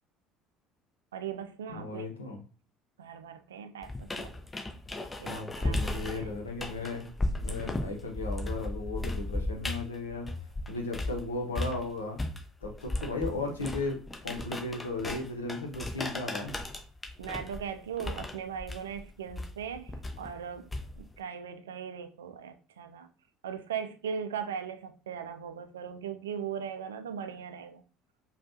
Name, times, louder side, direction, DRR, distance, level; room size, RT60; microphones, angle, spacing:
voice 1, 1.1-2.1 3.0-4.3 5.2-6.3 17.2-20.7 21.0-23.1 23.4-27.8, right 7 dB, 75° right, 0.4 m, -39 dB
voice 2, 1.7-2.4 5.2-7.1 7.3-10.3 10.7-12.2 12.6-16.6, left 3 dB, 80° left, 0.8 m, -36 dB
sound 1, 3.8-11.2 11.5-21.2, left 2 dB, 15° left, 0.8 m, -36 dB
5.1 x 2.3 x 2.7 m
figure-of-eight pair, 60°, 0 cm